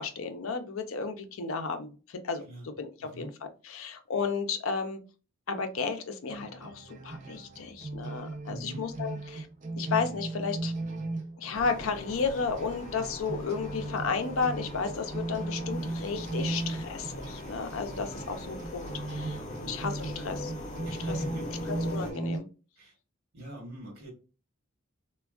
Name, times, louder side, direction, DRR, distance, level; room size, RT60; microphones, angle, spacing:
voice 1, 0.0-3.3 3.6-5.0 5.5-9.5 9.8-10.7 11.4-19.4 19.7-20.5 21.0-21.2 21.9-22.5, left 5 dB, 80° left, 7 dB, 0.5 m, -33 dB
voice 2, 3.0-3.3 8.5-8.9 19.5-19.8 20.8-21.6 22.8-22.9 23.3-24.1, right 1 dB, 70° right, 0 dB, 1.0 m, -42 dB
sound 1, 6.3-22.4, right 2 dB, 35° right, 0.4 m, -37 dB
sound 2, 11.5-22.1, left 1 dB, 35° left, 0.6 m, -41 dB
3.3 x 2.2 x 2.3 m, 0.34 s
head